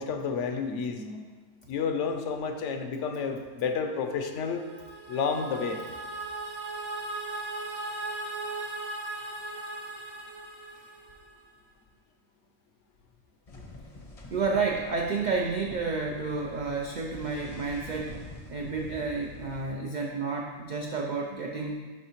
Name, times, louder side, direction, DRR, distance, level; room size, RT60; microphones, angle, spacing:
voice 1, 0.0-1.3 1.7-4.6 5.1-5.8, left 5 dB, 70° left, 5 dB, 0.9 m, -30 dB
sound 1, 4.3-11.4, right 2 dB, 40° right, 0.6 m, -38 dB
sound 2, 13.5-19.7, left 2 dB, 35° left, 0.6 m, -46 dB
voice 2, 14.3-18.2 18.5-21.8, right 4 dB, 80° right, 1 dB, 0.4 m, -30 dB
10.5 x 3.5 x 2.9 m, 1.4 s
omnidirectional pair, 1.3 m